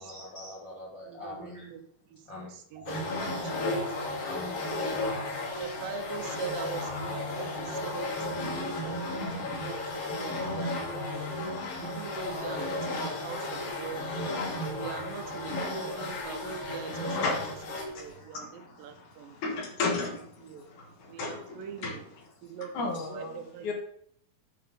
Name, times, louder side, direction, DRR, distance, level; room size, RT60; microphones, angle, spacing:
voice 1, 0.0-1.7 2.2-2.6 3.2-3.3 4.2-4.6 6.3-6.5, left 2 dB, 50° left, -5 dB, 1.5 m, -44 dB
voice 2, 1.1-1.8 2.7-3.9 5.6-11.3 11.8-14.1 14.7-17.3 17.9-19.4 20.4-20.6 21.1-22.0 22.4-23.7, right 7 dB, 80° right, 6 dB, 2.5 m, -42 dB
sound 1, 2.8-7.8, left 2 dB, 60° right, 2.7 m, -48 dB
sound 2, 2.9-18.0, left 2 dB, 85° left, 3.8 m, -34 dB
voice 3, 16.8-23.7, left 3 dB, 65° left, 1 dB, 2.6 m, -35 dB
9.4 x 5.6 x 3.7 m, 0.63 s
omnidirectional pair, 4.0 m